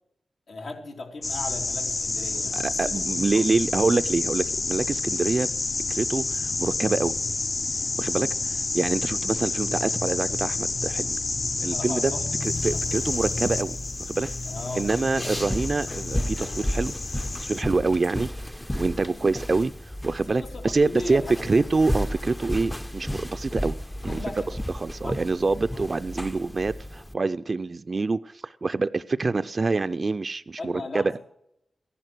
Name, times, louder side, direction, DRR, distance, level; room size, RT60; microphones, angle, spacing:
voice 1, 0.5-3.4 8.1-8.3 11.7-12.2 12.7-13.1 14.5-15.2 19.0-19.3 20.4-21.7 24.1-24.5 25.0-25.2 25.7-25.9 30.6-31.2, left 2 dB, 80° left, 3.1 m, -38 dB
sound 1, 1.2-17.6, left 3 dB, 55° left, 1.0 m, -29 dB
voice 2, 2.5-5.5 5.9-7.1 8.0-11.2 11.6-12.1 12.4-14.3 14.8-16.9 17.4-18.3 18.7-19.7 20.0-23.7 24.0-24.2 24.7-31.2, right 3 dB, 50° right, 0.4 m, -26 dB
sound 2, 12.4-27.1, equal, 10° left, 0.6 m, -33 dB
15.5 x 11.0 x 6.1 m
cardioid pair, 65°, 0 cm